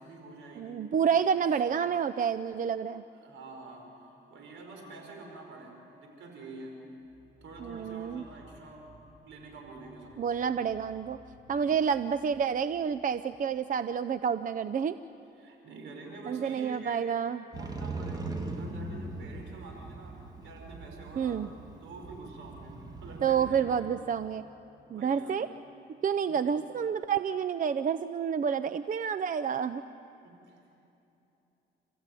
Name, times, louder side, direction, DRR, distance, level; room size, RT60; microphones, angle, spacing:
voice 1, 0.0-0.8 1.3-1.5 3.1-6.8 7.4-8.9 9.2-10.4 11.5-11.8 15.4-17.1 17.5-24.1 24.9-25.4 30.2-30.7, right 3 dB, 75° right, 2 dB, 5.4 m, -47 dB
voice 2, 0.6-3.0 7.6-8.2 10.2-11.2 11.5-15.0 16.3-17.4 21.2-21.5 23.2-24.4 24.9-25.5 26.0-29.8, right 7 dB, 40° right, 12 dB, 0.6 m, -29 dB
sound 1, 7.0-14.3, right 1 dB, 5° left, 4.6 m, -59 dB
Motorcycle, 17.5-23.6, right 2 dB, 20° right, 2.3 m, -40 dB
30.0 x 15.5 x 9.2 m, 2.9 s
cardioid pair, 90°, 20 cm